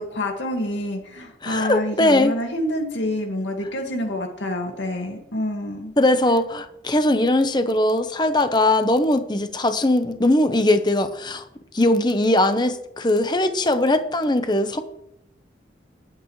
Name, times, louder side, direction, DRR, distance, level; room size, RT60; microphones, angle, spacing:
voice 1, 0.0-5.9, left 1 dB, 85° left, 2 dB, 2.1 m, -27 dB
voice 2, 1.4-2.3 6.0-11.4 11.7-14.8, left 1 dB, 25° left, 8 dB, 0.9 m, -20 dB
19.0 x 8.6 x 3.2 m, 0.79 s
head